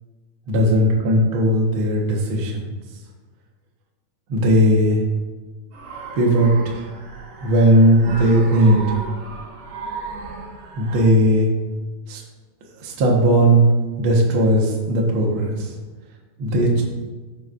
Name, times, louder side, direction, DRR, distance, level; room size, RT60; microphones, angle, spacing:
voice 1, 0.5-2.7 4.3-5.0 6.1-6.8 7.4-8.8 10.7-11.5 12.1-12.2 12.8-13.6 14.0-15.7 16.4-16.8, right 1 dB, 65° right, -1 dB, 1.3 m, -17 dB
sound 1, 5.7-11.0, right 4 dB, 85° right, 3.6 m, -35 dB
14.0 x 4.9 x 2.6 m, 1.3 s
omnidirectional pair, 4.3 m